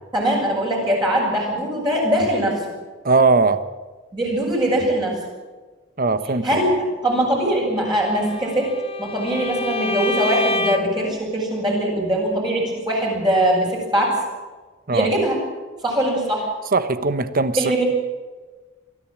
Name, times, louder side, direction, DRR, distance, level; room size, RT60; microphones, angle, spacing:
voice 1, 0.1-2.6 4.1-5.2 6.4-8.7 9.0-14.2 14.9-15.4 15.8-16.5 17.6-17.8, right 1 dB, 20° right, -3 dB, 7.2 m, -21 dB
voice 2, 3.0-3.6 6.0-6.6 14.9-15.1 16.7-17.6, right 3 dB, 45° right, 12 dB, 1.2 m, -19 dB
Bowed string instrument, 8.0-11.1, left 2 dB, 30° left, 1.1 m, -27 dB
23.5 x 14.0 x 8.8 m, 1.3 s
head